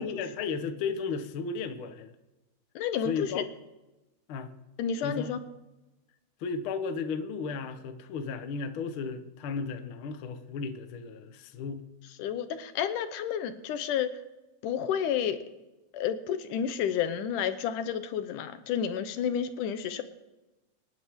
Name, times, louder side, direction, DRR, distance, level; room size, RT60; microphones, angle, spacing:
voice 1, 0.0-2.1 3.0-3.4 4.3-4.5 5.0-5.3 6.4-11.9, left 5 dB, 60° left, 8 dB, 1.4 m, -34 dB
voice 2, 2.8-3.4 4.8-5.4 12.2-14.1 14.6-15.4 15.9-20.0, left 8 dB, 80° left, 10 dB, 2.4 m, -30 dB
26.5 x 11.0 x 3.6 m, 1.0 s
omnidirectional pair, 3.7 m